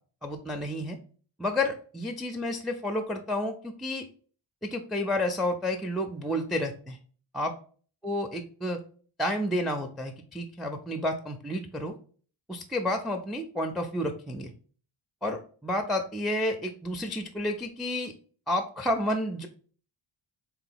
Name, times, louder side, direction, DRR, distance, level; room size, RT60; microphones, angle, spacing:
voice 1, 0.2-1.0 1.4-4.0 4.6-7.0 7.3-7.5 8.0-8.8 9.2-12.0 12.5-14.5 15.2-18.1 18.5-19.5, left 1 dB, ahead, 5 dB, 0.3 m, -30 dB
3.5 x 2.9 x 3.8 m, 0.43 s
wide cardioid pair, 90°, 48 cm